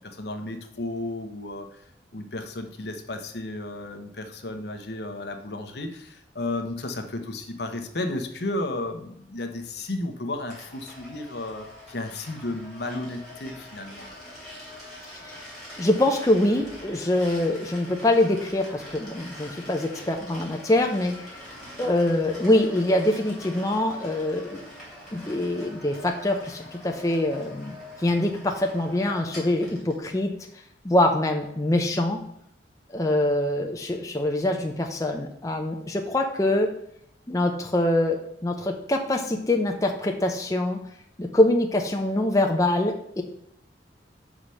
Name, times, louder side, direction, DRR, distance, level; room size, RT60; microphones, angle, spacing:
voice 1, 0.0-1.8 2.1-14.1, left 2 dB, 65° left, 6 dB, 1.0 m, -33 dB
sound 1, 10.5-30.0, left 1 dB, ahead, 3.2 m, -44 dB
voice 2, 15.1-15.5 15.8-21.4 21.8-24.6 25.1-30.3 30.8-32.2 32.9-36.7 37.3-40.8 41.2-43.2, left 1 dB, 20° left, 2 dB, 0.6 m, -24 dB
5.6 x 5.0 x 6.2 m, 0.73 s
head